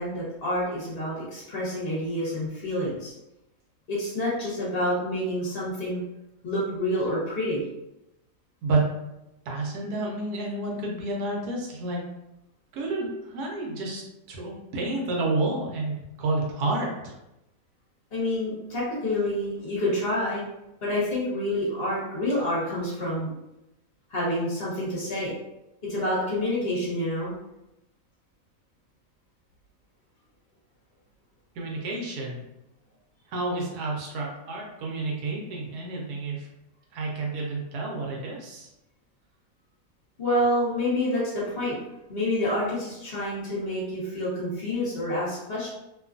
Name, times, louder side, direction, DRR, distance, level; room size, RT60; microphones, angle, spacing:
voice 1, 0.0-3.1 3.9-6.0 6.4-7.6 18.1-20.4 20.8-23.3 24.1-25.3 25.9-27.3 40.2-41.8 42.1-45.7, left 1 dB, 45° left, -7 dB, 1.1 m, -28 dB
voice 2, 9.5-12.0 12.7-14.0 14.3-17.2 31.6-32.4 33.3-36.5 36.9-38.7, right 2 dB, 75° right, -1 dB, 1.2 m, -30 dB
3.0 x 2.3 x 2.4 m, 0.92 s
omnidirectional pair, 1.7 m